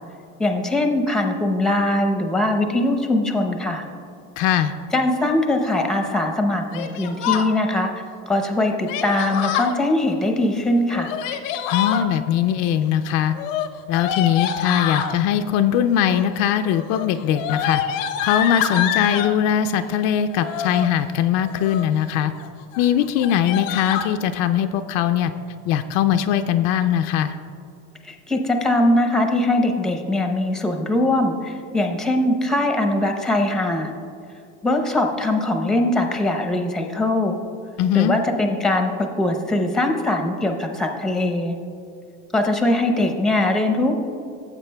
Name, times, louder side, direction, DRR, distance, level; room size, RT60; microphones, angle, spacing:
voice 1, 0.4-3.8 4.9-11.1 28.0-33.9 34.6-37.3 37.9-41.5 42.3-44.0, left 1 dB, ahead, 4 dB, 0.7 m, -21 dB
voice 2, 4.4-4.7 11.7-13.3 13.9-17.8 18.2-22.3 22.8-25.3 25.7-27.4 37.8-38.1, left 9 dB, 60° left, 8 dB, 0.5 m, -20 dB
Yell, 6.7-7.5 8.9-9.8 10.9-12.0 13.3-15.1 16.0-16.4 16.7-19.4 20.3-20.9 21.4-22.0 22.3-22.5 22.7-22.9 23.2-24.1, left 9 dB, 85° left, 0.8 m, -26 dB
15.0 x 7.8 x 2.2 m, 2.6 s
supercardioid pair, 130°, 37 cm